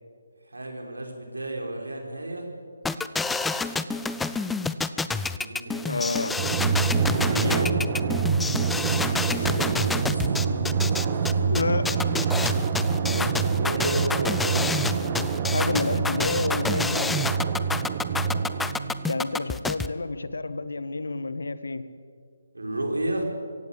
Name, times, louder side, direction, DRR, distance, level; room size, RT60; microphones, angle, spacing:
voice 1, 0.5-2.5 4.9-7.8 9.5-11.7 13.0-15.3 22.5-23.2, right 1 dB, 75° right, 2 dB, 5.3 m, -33 dB
sound 1, 2.9-19.9, left 4 dB, 5° left, 0.6 m, -29 dB
voice 2, 5.8-6.4 11.4-12.0 15.5-17.2 19.1-21.9, left 3 dB, 65° left, 13 dB, 1.4 m, -29 dB
Drum, 6.4-19.5, right 6 dB, 30° right, 1.3 m, -26 dB
sound 2, 8.5-13.3, equal, 85° left, 2.6 m, -42 dB
25.0 x 16.5 x 8.6 m, 2.1 s
figure-of-eight pair, 145°, 0 cm